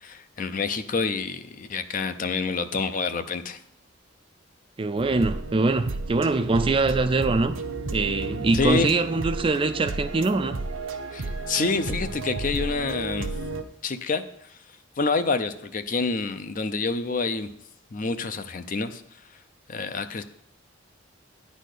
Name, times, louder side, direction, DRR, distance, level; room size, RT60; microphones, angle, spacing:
voice 1, 0.0-3.6 8.5-8.9 11.1-13.3 13.8-14.6 15.0-17.5 17.9-19.0 19.7-20.2, left 4 dB, 40° left, 0.5 m, -27 dB
voice 2, 4.8-7.5 7.9-10.6, right 3 dB, 25° right, 0.4 m, -23 dB
sound 1, 5.0-13.6, right 3 dB, 70° right, 0.7 m, -33 dB
10.0 x 4.2 x 6.5 m
head